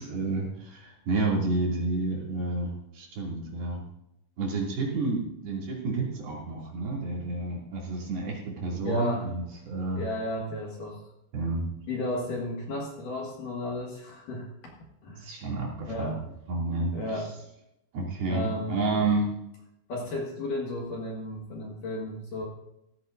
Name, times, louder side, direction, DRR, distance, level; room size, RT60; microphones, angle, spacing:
voice 1, 0.0-3.8 4.4-10.0 11.3-11.7 15.2-16.1 16.5-17.2 17.9-19.3, right 3 dB, 60° right, -4 dB, 4.4 m, -30 dB
voice 2, 8.8-9.2 9.9-11.0 11.9-14.5 15.0-15.3 15.9-16.2 16.9-17.3 18.3-19.1 19.9-22.5, left 1 dB, 55° left, -2 dB, 2.8 m, -33 dB
16.0 x 14.0 x 2.6 m, 0.83 s
omnidirectional pair, 5.2 m